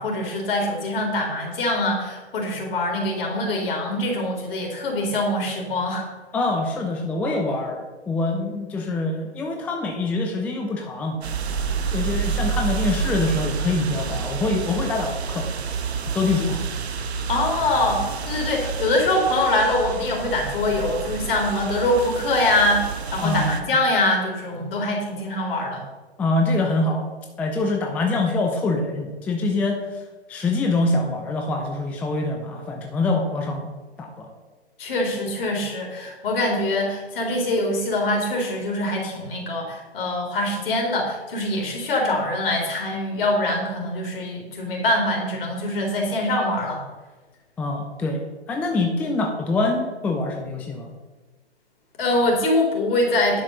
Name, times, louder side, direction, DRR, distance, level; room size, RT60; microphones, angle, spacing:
voice 1, 0.0-6.1 17.3-25.8 34.8-46.8 52.0-53.4, left 1 dB, 55° left, 1 dB, 3.7 m, -24 dB
voice 2, 6.3-11.2 11.9-15.5 16.1-16.6 23.2-23.6 26.2-27.1 27.4-30.0 30.3-33.7 34.0-34.3 47.6-48.2 48.5-50.9, left 2 dB, 5° left, 2 dB, 0.4 m, -24 dB
sound 1, 11.2-23.6, right 5 dB, 70° right, 1.4 m, -29 dB
11.0 x 5.7 x 6.7 m, 1.2 s
hypercardioid pair, 135°, 34 cm